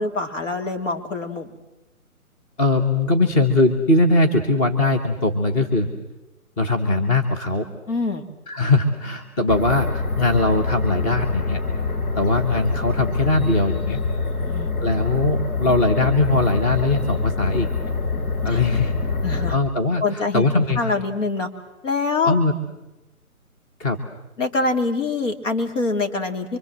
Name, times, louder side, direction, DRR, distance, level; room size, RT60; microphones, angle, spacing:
voice 1, 0.0-1.5 7.9-8.2 13.9-14.7 18.4-18.6 19.2-19.6 20.0-21.5 21.8-22.3 24.4-26.6, left 3 dB, 55° left, 4 dB, 3.2 m, -25 dB
voice 2, 2.6-5.9 6.6-7.7 8.5-11.6 12.1-14.0 14.8-17.7 18.4-18.9 19.3-20.9 22.2-22.5 23.8-24.0, left 2 dB, 15° left, 3 dB, 1.3 m, -20 dB
sound 1, 9.5-19.5, left 3 dB, 70° left, 3.3 m, -25 dB
25.0 x 25.0 x 7.6 m, 0.99 s
figure-of-eight pair, 140°, 44 cm